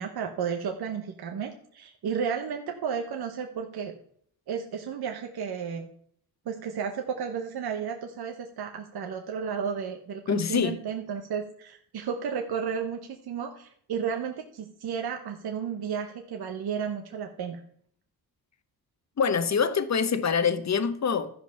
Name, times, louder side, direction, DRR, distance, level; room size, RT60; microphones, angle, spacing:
voice 1, 0.0-3.9 4.5-5.9 6.4-17.6, right 7 dB, 70° right, 1.0 m, -33 dB
voice 2, 10.3-10.8 19.2-21.4, left 6 dB, 45° left, 1.0 m, -25 dB
13.0 x 5.2 x 5.7 m
cardioid pair, 65°, 39 cm